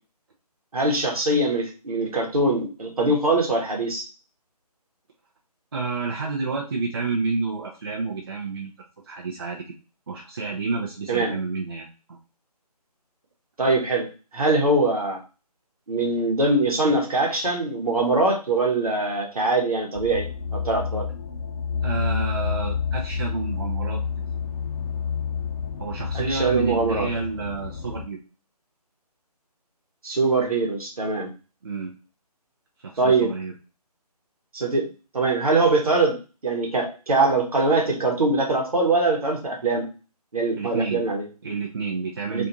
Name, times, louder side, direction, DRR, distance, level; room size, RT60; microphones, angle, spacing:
voice 1, 0.7-4.0 11.1-11.3 13.6-14.1 14.3-15.2 15.9-21.1 26.1-27.1 30.0-31.3 33.0-33.3 34.5-34.9 35.1-36.2 36.4-39.8 40.3-41.3 42.3-42.5, right 2 dB, 65° right, 1 dB, 1.0 m, -22 dB
voice 2, 5.7-8.7 9.0-9.8 10.1-12.2 21.8-24.0 25.8-28.2 31.6-31.9 32.8-33.5 40.6-41.0 41.4-42.5, right 4 dB, 40° right, -2 dB, 0.4 m, -29 dB
sound 1, 19.9-28.0, left 6 dB, 35° left, 0.8 m, -29 dB
2.5 x 2.4 x 2.7 m, 0.33 s
figure-of-eight pair, 150°, 21 cm